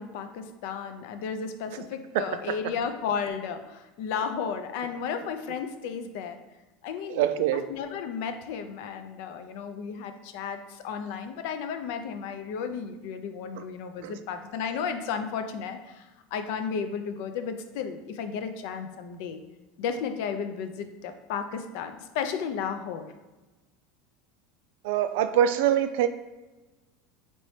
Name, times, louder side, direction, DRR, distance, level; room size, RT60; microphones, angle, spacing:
voice 1, 0.0-6.4 6.8-7.3 7.5-19.4 19.8-23.1, left 6 dB, 65° left, 8 dB, 0.4 m, -33 dB
voice 2, 2.1-2.6 7.1-7.7 13.5-13.6 14.0-14.1 24.8-26.1, right 10 dB, 75° right, 10 dB, 0.3 m, -24 dB
4.2 x 3.0 x 3.1 m, 1.2 s
supercardioid pair, 145°, 0 cm